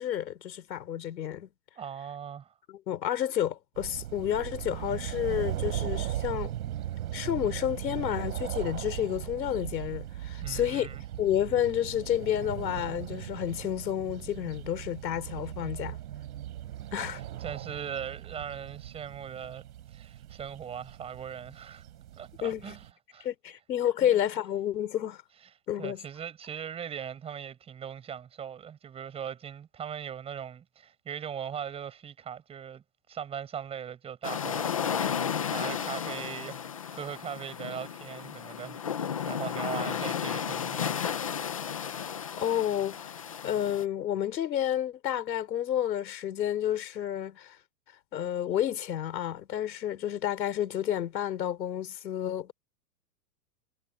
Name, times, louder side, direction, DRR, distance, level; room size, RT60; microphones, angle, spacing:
voice 1, 0.0-1.5 2.7-6.5 7.1-16.0 16.9-17.2 22.4-22.7 23.2-25.2 25.7-26.0 42.4-47.6 48.1-52.5, left 11 dB, 85° left, 3.9 m, -30 dB
voice 2, 1.8-2.5 10.4-11.0 17.0-17.1 17.4-21.8 22.1-22.9 23.1-23.3 24.0-24.2 25.8-41.1, right 8 dB, 10° right, 7.6 m, -40 dB
sound 1, 3.8-22.9, right 12 dB, 60° right, 4.3 m, -38 dB
sound 2, 34.2-43.8, left 8 dB, 20° left, 0.5 m, -33 dB
supercardioid pair, 180°, 50 cm